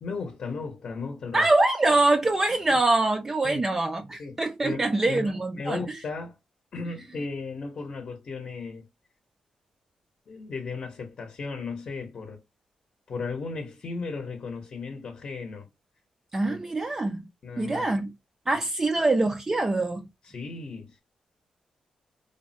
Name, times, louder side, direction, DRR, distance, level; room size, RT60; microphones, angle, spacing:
voice 1, 0.0-1.5 2.7-2.8 3.4-3.7 4.2-6.4 6.7-8.9 10.3-12.4 13.1-15.7 16.4-16.6 17.4-17.9 20.2-21.0, left 4 dB, 45° left, 0.7 m, -36 dB
voice 2, 1.3-5.8 16.3-17.3 17.6-18.1 18.5-20.1, right 2 dB, 20° right, 0.3 m, -24 dB
3.4 x 2.0 x 2.5 m
wide cardioid pair, 125°, 2 cm